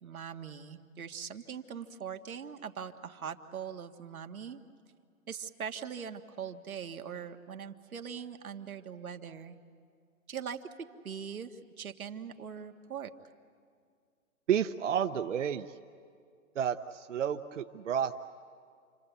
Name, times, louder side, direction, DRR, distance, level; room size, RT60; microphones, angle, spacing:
voice 1, 0.0-4.6 5.3-9.6 10.3-13.1, right 7 dB, 90° right, 5 dB, 1.8 m, -41 dB
voice 2, 14.5-15.8 16.5-18.1, right 9 dB, 60° right, 7 dB, 0.8 m, -31 dB
29.0 x 24.0 x 8.2 m, 2.2 s
hypercardioid pair, 165°, 41 cm